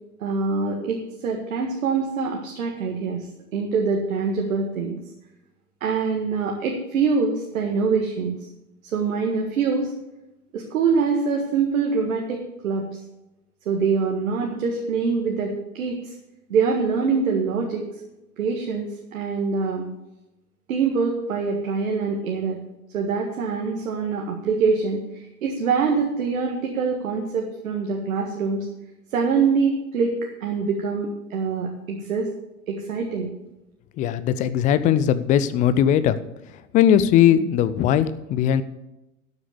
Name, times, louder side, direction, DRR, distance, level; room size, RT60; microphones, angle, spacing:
voice 1, 0.2-3.3 3.5-4.9 5.8-8.4 8.9-9.9 10.5-12.8 13.7-16.2 16.5-17.9 18.4-19.9 20.7-22.6 22.9-28.7 29.1-32.3 32.7-33.3, right 5 dB, 60° right, 1 dB, 1.8 m, -24 dB
voice 2, 34.0-36.2 36.7-38.6, left 10 dB, 20° left, 14 dB, 0.4 m, -19 dB
12.5 x 6.8 x 6.9 m, 0.95 s
figure-of-eight pair, 90°, 44 cm